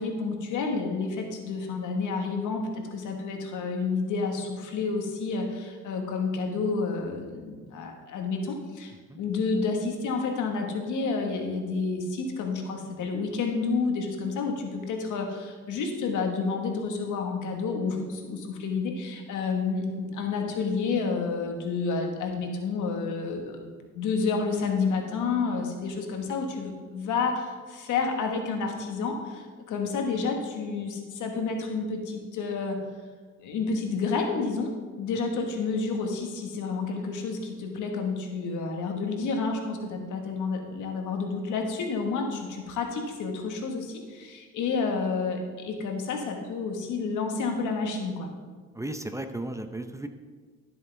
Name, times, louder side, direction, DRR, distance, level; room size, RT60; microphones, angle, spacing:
voice 1, 0.0-32.8 33.4-48.3, left 4 dB, 80° left, 3 dB, 1.6 m, -30 dB
voice 2, 48.7-50.1, right 1 dB, 10° right, 7 dB, 0.6 m, -35 dB
12.5 x 7.7 x 3.4 m, 1.5 s
cardioid pair, 90°, 30 cm